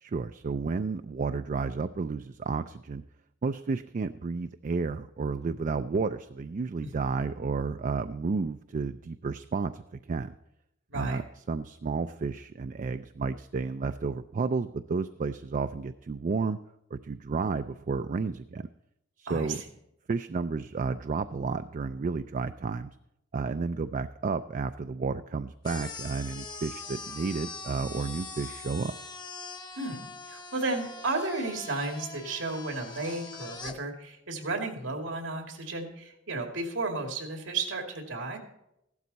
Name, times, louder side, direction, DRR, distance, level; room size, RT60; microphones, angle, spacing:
voice 1, 0.0-3.0 3.4-10.4 10.9-16.6 16.9-18.7 19.2-19.6 20.1-22.9 23.3-28.9, right 4 dB, 40° right, 10 dB, 0.4 m, -32 dB
voice 2, 10.9-11.2 19.3-19.6 29.8-38.4, right 3 dB, 90° right, 3 dB, 2.3 m, -33 dB
sound 1, 25.6-33.8, left 4 dB, 20° left, 1.0 m, -42 dB
15.0 x 12.0 x 4.1 m, 0.83 s
head